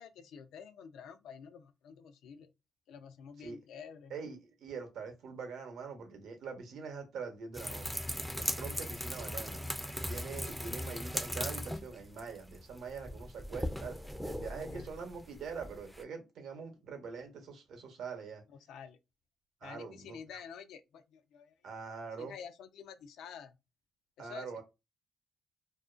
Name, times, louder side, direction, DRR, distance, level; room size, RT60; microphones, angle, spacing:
voice 1, 0.0-2.5 2.9-4.1 10.4-10.5 14.5-14.9 18.5-19.0 19.6-21.5 22.2-23.6 24.2-24.6, left 7 dB, 85° left, 0.3 m, -49 dB
voice 2, 4.1-8.0 8.3-9.6 10.1-14.0 14.2-18.4 19.6-20.4 21.6-22.3 24.2-24.6, right 5 dB, 75° right, 0.7 m, -44 dB
sound 1, 7.5-16.0, equal, ahead, 0.3 m, -39 dB
2.4 x 2.1 x 2.4 m
cardioid pair, 90°, 0 cm